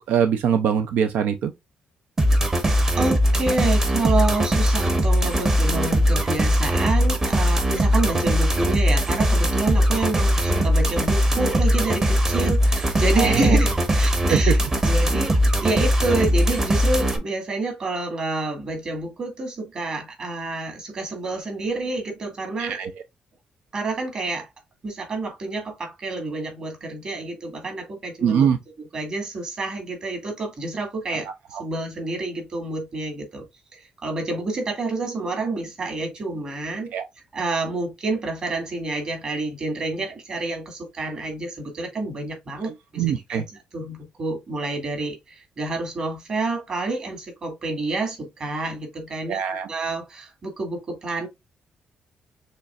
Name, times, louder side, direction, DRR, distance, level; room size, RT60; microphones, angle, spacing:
voice 1, 0.0-1.5 13.2-13.6 14.3-14.5 22.6-22.9 28.2-28.6 31.5-31.6 36.9-37.1 43.0-43.4 49.3-49.7, right 8 dB, 85° right, 0.5 m, -22 dB
sound 1, 2.2-17.2, equal, 20° right, 0.9 m, -20 dB
voice 2, 3.0-15.4 15.6-22.8 23.7-24.5 24.8-28.5 28.8-33.4 33.7-36.9 37.3-43.0 43.3-49.4 49.7-51.3, right 2 dB, 35° right, 2.2 m, -28 dB
6.7 x 3.1 x 2.4 m
cardioid pair, 160°, 3 cm